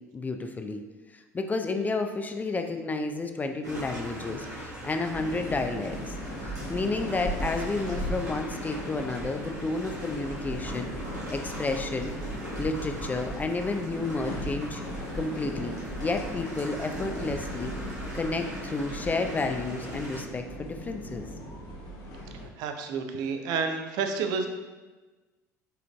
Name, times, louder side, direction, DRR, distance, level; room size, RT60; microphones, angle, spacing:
voice 1, 0.1-0.8 1.3-6.1 6.4-10.9 11.3-12.1 12.6-14.8 15.1-17.7 18.1-21.2, left 3 dB, 20° left, 6 dB, 0.4 m, -31 dB
sound 1, 3.6-20.2, right 1 dB, 85° right, 0.9 m, -41 dB
sound 2, 5.1-22.5, equal, 40° left, 1.1 m, -37 dB
voice 2, 22.3-24.5, right 5 dB, 50° right, 5 dB, 0.5 m, -30 dB
5.5 x 3.8 x 2.2 m, 1.2 s
figure-of-eight pair, 65°, 9 cm